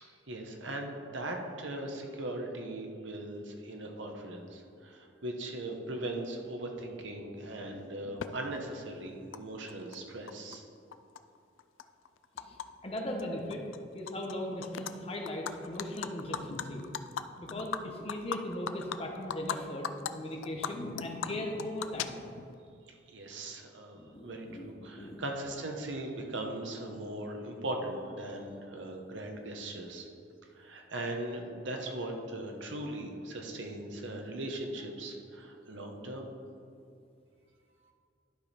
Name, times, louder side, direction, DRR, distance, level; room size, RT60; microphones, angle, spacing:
voice 1, 0.0-10.6 22.9-30.1 30.5-36.3, right 1 dB, 75° right, 2 dB, 1.1 m, -39 dB
voice 2, 7.7-8.2 8.5-8.6 12.3-12.6 12.8-13.7 13.9-16.8 17.4-22.3 23.9-24.7 24.9-25.2, left 1 dB, 30° left, 1 dB, 1.0 m, -39 dB
Animal, 8.2-8.3 9.3-9.4 9.7-10.6 10.9-12.7 13.0-13.2 13.5-14.3 14.6-14.9 15.3-19.6 19.8-20.1 20.4-22.5, left 7 dB, 85° left, 0.4 m, -38 dB
11.5 x 5.1 x 4.3 m, 2.5 s
head